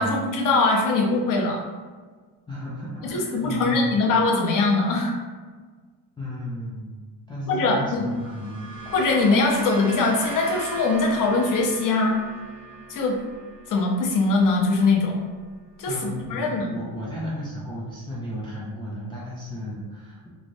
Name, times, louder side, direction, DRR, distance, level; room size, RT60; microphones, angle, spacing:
voice 1, 0.0-1.6 3.0-5.1 7.5-8.0 8.9-12.2 12.9-13.2 13.7-15.2 15.8-16.7, left 3 dB, 45° left, 0 dB, 0.6 m, -22 dB
voice 2, 2.5-4.1 6.2-7.0 7.3-8.7 15.9-20.3, equal, 10° left, -8 dB, 0.3 m, -34 dB
sound 1, 7.8-16.3, right 2 dB, 10° right, 0.7 m, -40 dB
3.1 x 2.6 x 2.6 m, 1.4 s
cardioid pair, 155°, 45 cm